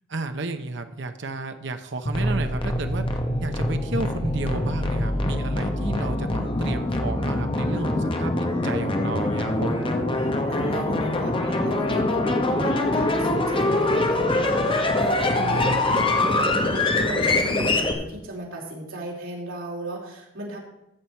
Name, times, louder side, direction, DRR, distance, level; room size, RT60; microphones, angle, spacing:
voice 1, 0.1-3.0 3.4-8.3 8.6-9.8 15.3-16.0, right 2 dB, 60° right, 7 dB, 0.8 m, -32 dB
sound 1, 2.1-17.9, left 2 dB, 25° left, 1.1 m, -24 dB
voice 2, 7.6-8.1 9.7-20.6, right 1 dB, 85° right, -3 dB, 3.4 m, -35 dB
14.5 x 7.1 x 4.5 m, 0.89 s
head